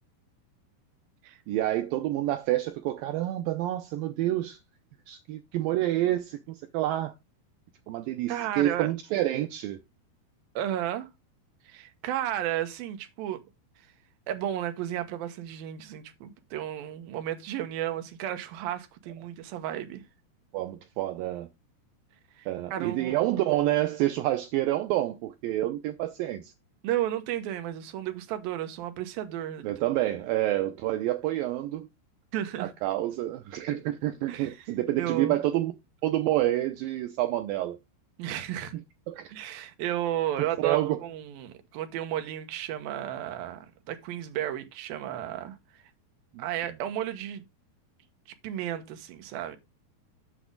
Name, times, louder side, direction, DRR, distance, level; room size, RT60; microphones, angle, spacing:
voice 1, 1.5-4.6 5.1-7.1 7.9-9.8 20.5-21.5 22.5-26.5 29.6-31.9 32.6-35.7 36.0-37.8 38.7-39.3 40.6-41.0 46.3-46.4, right 14 dB, 90° right, 2.0 m, -28 dB
voice 2, 8.3-8.9 10.6-11.1 11.7-13.4 14.3-20.0 22.4-23.4 26.8-29.7 32.3-32.7 34.3-34.6 35.0-35.4 38.2-38.7 39.3-45.6 46.4-47.5 48.4-49.6, right 12 dB, 70° right, 2.7 m, -33 dB
8.3 x 6.7 x 3.7 m
omnidirectional pair, 4.8 m